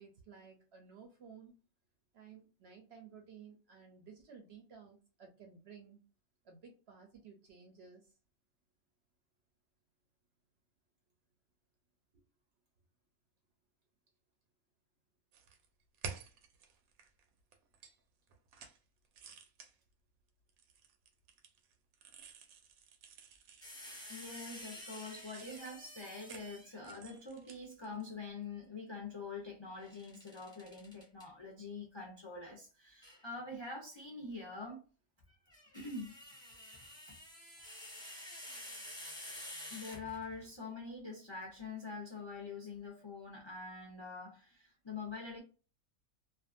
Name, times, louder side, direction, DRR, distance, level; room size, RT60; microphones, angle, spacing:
voice 1, 0.0-1.5 2.1-6.0 6.4-8.2 12.1-12.2, right 6 dB, 60° right, 0.7 m, -56 dB
sound 1, 15.3-17.2 17.5-18.0 18.3-18.8 19.0-19.7 20.5-24.4 24.7-28.1, right 5 dB, 80° right, 1.0 m, -52 dB
sound 2, 23.6-26.9 29.8-31.2 33.0-33.2 35.3-40.5, left 1 dB, 5° left, 0.8 m, -50 dB
voice 2, 23.7-34.8 35.7-36.1 37.1-37.2 39.7-45.4, left 3 dB, 45° left, 0.3 m, -45 dB
2.5 x 2.3 x 2.5 m
omnidirectional pair, 1.5 m